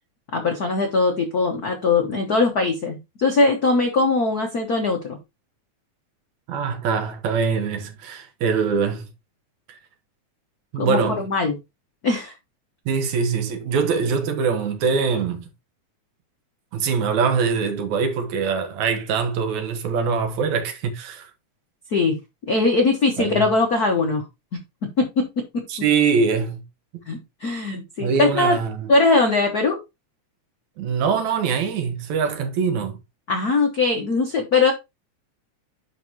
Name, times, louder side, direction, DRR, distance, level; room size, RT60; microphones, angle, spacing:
voice 1, 0.3-5.2 10.8-11.6 12.0-12.3 21.9-22.2 22.5-24.2 24.5-25.3 27.1-28.6 28.9-29.8 33.3-34.7, left 3 dB, 75° left, 0.8 m, -21 dB
voice 2, 6.5-9.0 10.7-11.2 12.9-15.5 16.7-21.3 23.2-23.5 25.7-26.6 26.9-27.0 28.0-28.9 30.8-33.0, right 5 dB, 70° right, 2.5 m, -23 dB
11.0 x 4.2 x 2.8 m
omnidirectional pair, 3.5 m